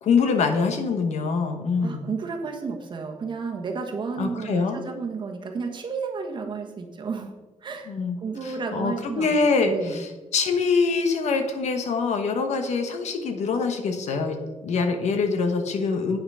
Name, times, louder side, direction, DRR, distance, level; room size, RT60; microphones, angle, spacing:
voice 1, 0.0-2.1 4.2-4.8 7.9-14.4 14.6-16.2, left 4 dB, 70° left, 6 dB, 1.2 m, -24 dB
voice 2, 1.8-7.3 7.6-9.3 9.7-10.0, right 5 dB, 40° right, 3 dB, 1.2 m, -32 dB
8.8 x 5.8 x 5.5 m, 1.2 s
wide cardioid pair, 175°, 12 cm